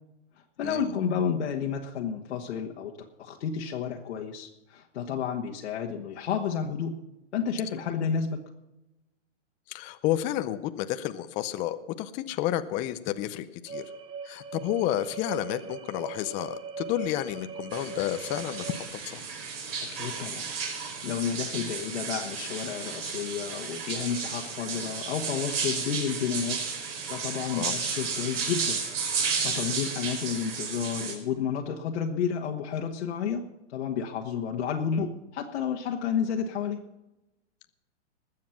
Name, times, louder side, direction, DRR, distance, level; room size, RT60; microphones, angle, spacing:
voice 1, 0.6-2.9 3.2-6.9 7.3-8.4 19.9-20.4 21.0-26.6 27.1-28.8 29.1-36.8, left 7 dB, 70° left, 0 dB, 1.5 m, -31 dB
voice 2, 9.7-13.8 14.2-19.2 27.6-27.7, left 13 dB, 20° left, 11 dB, 0.5 m, -31 dB
sound 1, 13.7-18.9, right 5 dB, 15° right, 0.9 m, -40 dB
sound 2, 17.7-31.1, right 5 dB, 55° right, 5.1 m, -33 dB
20.0 x 7.5 x 5.9 m, 0.98 s
hypercardioid pair, 140°, 36 cm